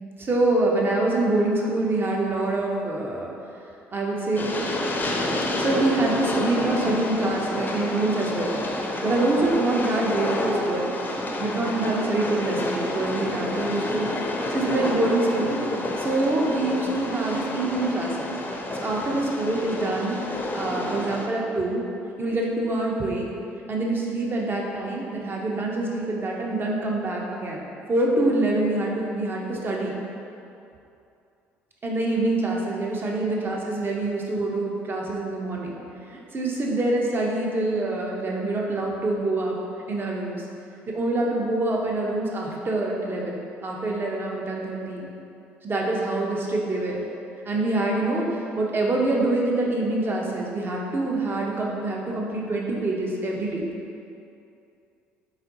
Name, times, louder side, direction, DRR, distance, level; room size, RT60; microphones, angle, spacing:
voice 1, 0.2-3.3 3.9-4.5 5.6-8.6 9.0-10.9 11.4-14.1 14.5-15.6 16.0-18.3 18.7-21.8 22.2-23.3 23.7-30.0 31.8-35.8 36.1-39.6 39.9-40.4 40.9-45.1 45.6-47.0 47.5-53.7, right 2 dB, 35° right, -2 dB, 0.8 m, -25 dB
Train, 4.4-21.3, left 1 dB, 30° left, 0.6 m, -29 dB
4.1 x 3.7 x 2.8 m, 2.6 s
hypercardioid pair, 55°, 6 cm